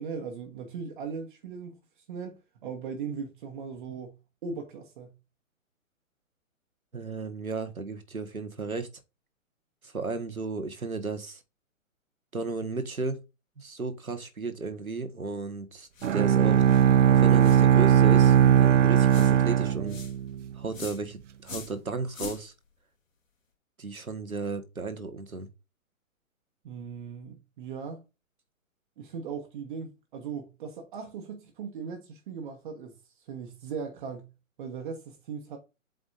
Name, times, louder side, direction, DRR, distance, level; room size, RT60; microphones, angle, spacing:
voice 1, 0.0-4.2 4.4-5.1 26.6-28.0 29.0-34.3 34.6-35.6, right 6 dB, 35° right, 1.3 m, -38 dB
voice 2, 6.9-8.9 9.8-11.4 12.3-13.2 13.6-16.6 17.0-20.0 20.5-22.5 23.8-25.5, right 4 dB, 90° right, 1.5 m, -34 dB
sound 1, 15.9-16.2 16.7-16.9 17.4-17.7 18.2-18.4 19.1-19.3 19.9-20.1 20.7-21.0 21.4-21.8 22.1-22.4, left 4 dB, 70° left, 2.5 m, -42 dB
Bowed string instrument, 16.0-20.4, right 9 dB, 60° right, 0.6 m, -19 dB
7.9 x 5.0 x 2.5 m
figure-of-eight pair, 125°, 41 cm